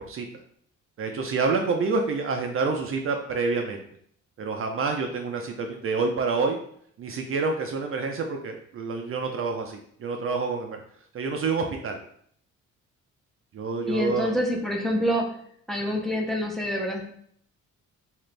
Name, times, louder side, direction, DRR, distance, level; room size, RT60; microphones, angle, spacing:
voice 1, 1.0-3.8 4.4-6.6 7.0-10.8 11.1-12.0 13.5-14.3, right 4 dB, 45° right, 3 dB, 0.5 m, -27 dB
voice 2, 13.9-15.3 15.7-17.0, equal, ahead, 0 dB, 0.6 m, -26 dB
2.8 x 2.5 x 3.2 m, 0.63 s
cardioid pair, 90°, 30 cm